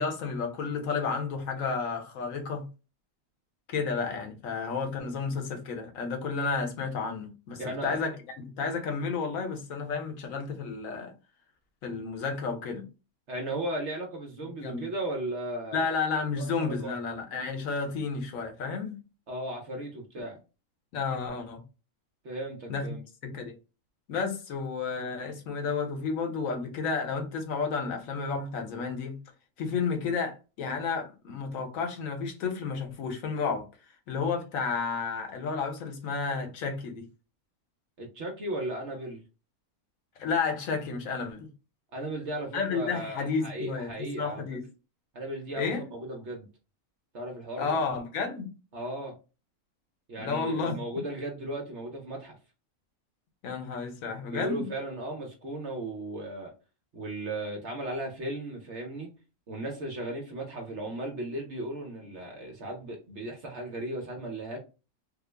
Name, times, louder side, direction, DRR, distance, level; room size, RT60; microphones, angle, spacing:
voice 1, 0.0-2.7 3.7-11.1 11.8-12.8 14.6-14.9 15.7-19.0 20.9-21.6 22.7-23.6 24.1-29.2 29.6-33.6 34.1-37.0 40.2-41.5 42.5-44.6 45.5-45.8 47.6-48.5 50.2-50.8 53.4-54.7, left 5 dB, 65° left, 1.2 m, -31 dB
voice 2, 7.6-8.0 13.3-15.9 16.4-16.9 19.3-20.4 22.2-23.0 38.0-39.2 41.9-44.6 45.1-46.5 47.1-47.8 48.7-49.1 50.1-52.4 54.3-56.5 56.9-59.1 59.5-64.6, right 1 dB, 55° right, 1.0 m, -36 dB
3.6 x 2.0 x 3.3 m
omnidirectional pair, 1.6 m